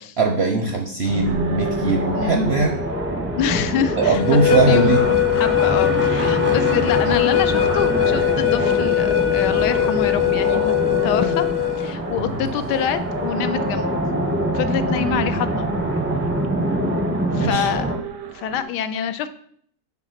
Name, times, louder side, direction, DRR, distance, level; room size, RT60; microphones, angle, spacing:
voice 1, 0.2-2.7 4.0-5.0 12.2-12.6 17.3-17.7 18.5-18.6, right 3 dB, 60° right, 3 dB, 0.7 m, -20 dB
sound 1, 1.0-18.0, right 1 dB, 15° right, 0.4 m, -25 dB
sound 2, 1.2-18.6, right 7 dB, 80° right, 1.3 m, -37 dB
voice 2, 3.4-4.2 4.7-11.5 11.8-14.0 14.5-15.7 17.3-17.9 18.2-19.3, left 9 dB, 80° left, 11 dB, 1.2 m, -26 dB
sound 3, 4.1-11.9, left 14 dB, 65° left, 0.8 m, -20 dB
5.9 x 4.1 x 5.8 m, 0.63 s
omnidirectional pair, 1.8 m